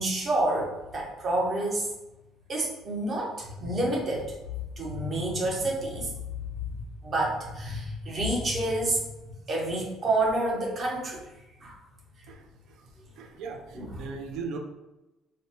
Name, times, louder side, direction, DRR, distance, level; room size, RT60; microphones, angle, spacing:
voice 1, 0.0-1.9 2.5-4.3 4.8-6.1 6.6-9.0 9.5-11.2 11.6-11.8 13.7-13.9, right 1 dB, 40° right, -2 dB, 0.7 m, -28 dB
voice 2, 12.3-12.8 13.2-14.6, right 5 dB, 80° right, 3 dB, 0.3 m, -39 dB
2.5 x 2.0 x 2.8 m, 1.0 s
cardioid pair, 110°, 0 cm